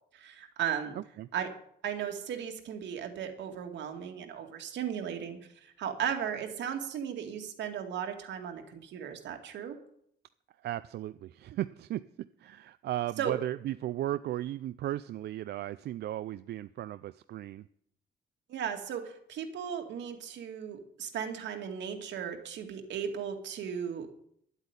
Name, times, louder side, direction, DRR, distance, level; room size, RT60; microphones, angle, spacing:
voice 1, 0.1-0.9 1.3-1.5 1.8-9.7 13.2-13.3 18.5-24.1, right 8 dB, 85° right, 4 dB, 2.2 m, -36 dB
voice 2, 10.6-17.7, right 13 dB, 65° right, 13 dB, 0.4 m, -36 dB
11.0 x 8.2 x 9.8 m, 0.70 s
cardioid pair, 165°, 18 cm